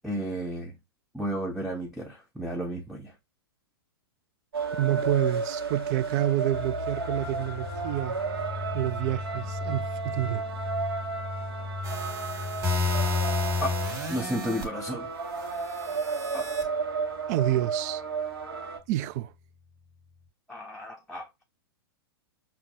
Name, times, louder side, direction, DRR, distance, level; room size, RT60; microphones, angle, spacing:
voice 1, 0.0-0.7 1.1-3.1 13.6-13.7 14.1-15.1 16.3-16.5 20.5-21.4, equal, ahead, 0.6 m, -33 dB
sound 1, 4.5-18.8, right 4 dB, 75° right, 1.1 m, -33 dB
voice 2, 4.8-8.2 8.7-10.5 17.3-18.0 18.9-19.3, right 14 dB, 45° right, 0.4 m, -28 dB
sound 2, 6.5-14.3, left 3 dB, 70° left, 0.6 m, -38 dB
sound 3, 11.8-14.6 15.6-16.6, left 3 dB, 25° right, 1.4 m, -30 dB
5.8 x 2.2 x 2.6 m
hypercardioid pair, 115°, 13 cm